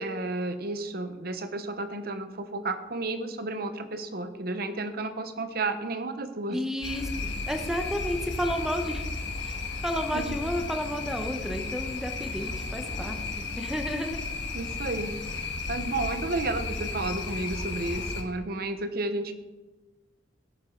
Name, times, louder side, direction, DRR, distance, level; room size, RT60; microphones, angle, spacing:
voice 1, 0.0-6.6 10.1-10.3 14.5-19.3, right 2 dB, 55° right, 9 dB, 0.9 m, -32 dB
voice 2, 6.5-9.0 9.4-9.5 9.8-13.2 13.6-14.2, equal, ahead, 4 dB, 0.9 m, -31 dB
sound 1, 6.8-18.2, left 3 dB, 70° left, 1.4 m, -34 dB
17.0 x 7.4 x 3.8 m, 1.2 s
head